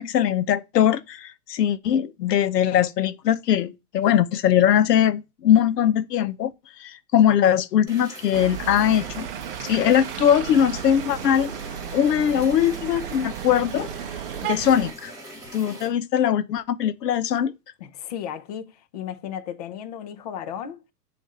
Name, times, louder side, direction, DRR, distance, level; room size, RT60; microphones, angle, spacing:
voice 1, 0.0-6.5 6.8-9.3 9.6-11.5 11.9-13.9 14.5-15.1 15.5-17.5, left 10 dB, 85° left, 0.6 m, -21 dB
sound 1, 7.9-15.9, equal, 5° right, 1.8 m, -42 dB
sound 2, 8.3-14.9, right 10 dB, 35° right, 0.5 m, -34 dB
voice 2, 17.8-20.8, left 9 dB, 30° left, 0.4 m, -34 dB
7.1 x 2.5 x 5.4 m
hypercardioid pair, 130°, 47 cm